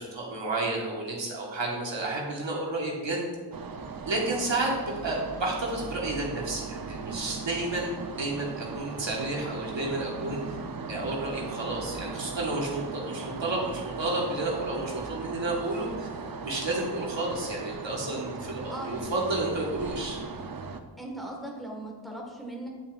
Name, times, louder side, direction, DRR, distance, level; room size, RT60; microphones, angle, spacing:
voice 1, 0.0-3.2 4.1-7.9 8.2-10.6 10.9-16.1 16.4-20.2, right 2 dB, 90° right, -3 dB, 1.5 m, -31 dB
sound 1, 3.5-20.8, right 4 dB, 50° right, 0.6 m, -38 dB
voice 2, 18.7-19.2 21.0-22.7, right 1 dB, ahead, -1 dB, 1.5 m, -38 dB
9.6 x 5.9 x 2.4 m, 1.4 s
wide cardioid pair, 60°, 44 cm